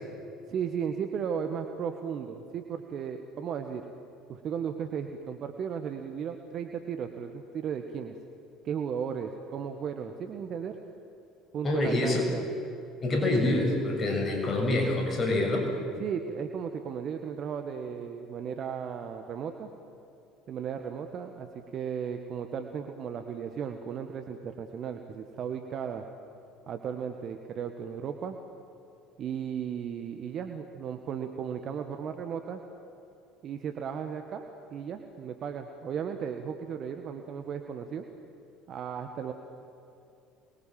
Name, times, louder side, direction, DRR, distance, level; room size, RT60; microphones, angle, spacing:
voice 1, 0.5-3.8 4.3-8.2 8.6-10.8 11.5-12.4 16.0-19.7 20.5-26.0 26.7-28.4 29.2-32.6 33.4-38.1 38.7-39.3, right 7 dB, 50° right, 6 dB, 1.6 m, -35 dB
voice 2, 11.6-12.3 13.0-15.7, left 2 dB, 35° left, 2 dB, 6.8 m, -26 dB
27.0 x 22.0 x 7.6 m, 2.7 s
hypercardioid pair, 65°, 0 cm